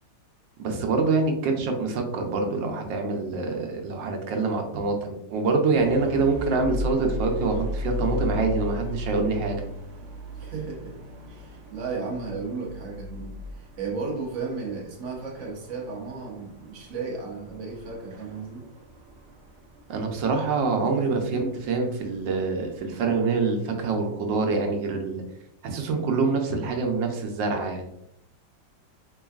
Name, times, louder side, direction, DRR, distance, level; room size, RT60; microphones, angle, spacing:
voice 1, 0.6-9.6 19.9-25.2 25.6-27.9, right 4 dB, 85° right, 3 dB, 1.4 m, -25 dB
sound 1, 5.7-23.4, left 2 dB, 70° right, 0.6 m, -37 dB
voice 2, 10.3-11.0 11.3-18.6 20.7-20.9, right 4 dB, 50° right, -1 dB, 1.1 m, -34 dB
3.8 x 3.4 x 2.3 m, 0.77 s
omnidirectional pair, 1.9 m